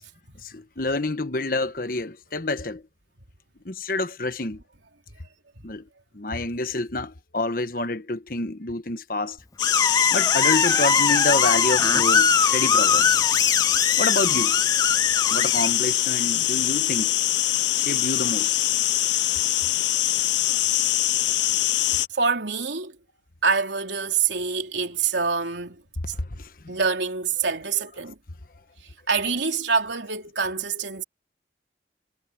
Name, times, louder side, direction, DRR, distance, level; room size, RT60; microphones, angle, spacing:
voice 1, 0.4-2.8 3.6-4.6 5.6-5.8 6.1-9.4 10.1-13.1 13.6-14.6 15.3-17.1 17.7-18.8 20.4-20.6 26.2-26.5, left 2 dB, 50° left, 1.3 m, -28 dB
sound 1, 9.6-22.1, left 14 dB, 90° left, 0.7 m, -23 dB
Screech, 9.6-15.7, left 4 dB, 20° left, 0.8 m, -23 dB
voice 2, 22.1-23.0 23.4-26.1 26.7-28.2 29.1-31.0, right 5 dB, 90° right, 3.4 m, -26 dB
head